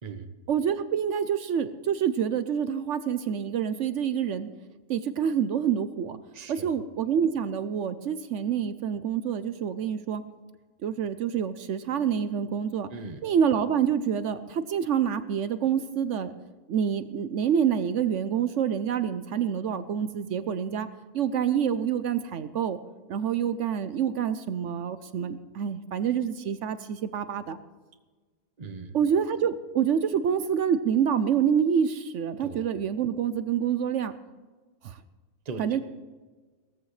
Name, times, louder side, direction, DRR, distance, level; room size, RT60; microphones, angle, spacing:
voice 1, 0.5-4.5 4.9-6.2 6.5-10.2 10.8-12.9 13.2-16.3 16.7-20.9 21.1-22.8 23.1-27.6 28.9-34.1 34.8-35.0 35.6-35.8, right 8 dB, 65° right, 12 dB, 0.9 m, -27 dB
voice 2, 6.3-6.7 12.9-13.2 28.6-29.0 32.4-32.7 35.4-35.8, right 4 dB, 30° right, 7 dB, 1.0 m, -39 dB
18.0 x 14.0 x 3.2 m, 1.4 s
omnidirectional pair, 1.6 m